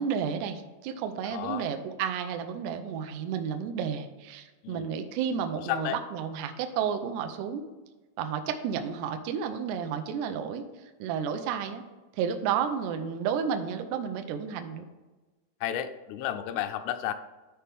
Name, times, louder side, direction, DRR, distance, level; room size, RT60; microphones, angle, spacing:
voice 1, 0.0-7.6 8.2-10.7 11.0-11.8 12.1-14.8, right 7 dB, 85° right, 6 dB, 2.4 m, -31 dB
voice 2, 1.3-1.7 4.6-4.9 5.7-6.0 15.6-17.1, left 11 dB, 85° left, 9 dB, 3.0 m, -32 dB
12.5 x 4.4 x 3.5 m, 1.2 s
omnidirectional pair, 5.5 m